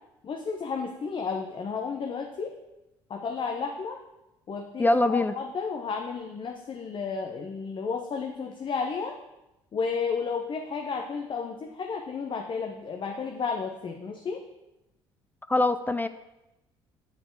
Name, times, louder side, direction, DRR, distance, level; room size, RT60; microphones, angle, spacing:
voice 1, 0.2-2.5 3.1-4.0 4.5-9.1 9.7-14.4, left 5 dB, 45° left, 3 dB, 0.8 m, -32 dB
voice 2, 4.8-5.3 15.5-16.1, left 2 dB, 15° left, 11 dB, 0.4 m, -23 dB
8.0 x 4.3 x 4.6 m, 0.94 s
hypercardioid pair, 65°, 12 cm